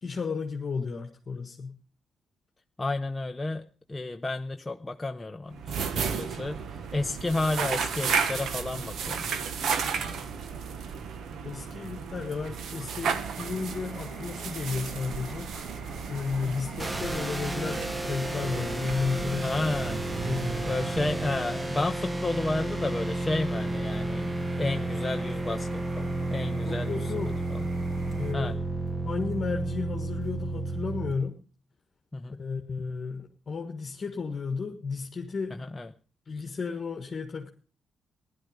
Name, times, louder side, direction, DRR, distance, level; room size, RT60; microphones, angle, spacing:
voice 1, 0.0-1.8 11.4-15.5 16.1-19.6 20.3-20.5 26.7-27.4 28.2-28.5 29.0-31.4 32.4-35.6 36.2-37.5, left 5 dB, 40° left, 2 dB, 1.6 m, -33 dB
voice 2, 2.8-9.3 10.0-10.2 16.5-16.6 19.4-20.0 20.7-27.1 27.5-27.7 28.3-28.5 32.1-32.4 35.6-35.9, left 2 dB, 15° left, 6 dB, 0.7 m, -32 dB
sound 1, 5.5-21.6, right 6 dB, 70° right, 1.4 m, -34 dB
sound 2, 13.0-28.3, right 3 dB, 40° right, 5.0 m, -45 dB
sound 3, 16.8-31.1, right 2 dB, 15° right, 1.0 m, -32 dB
15.5 x 11.5 x 5.1 m, 0.39 s
cardioid pair, 95°, 0 cm